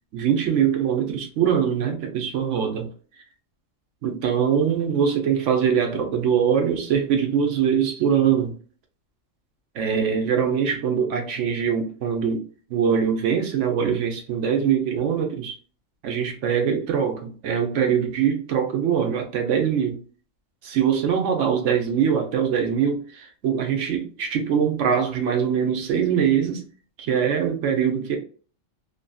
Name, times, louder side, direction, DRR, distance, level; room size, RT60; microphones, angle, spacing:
voice 1, 0.1-2.9 4.0-8.6 9.7-12.4 12.7-15.5 16.0-20.0 20.6-26.6 27.0-28.2, right 7 dB, 70° right, 1.0 m, -23 dB
2.7 x 2.6 x 2.2 m
omnidirectional pair, 1.3 m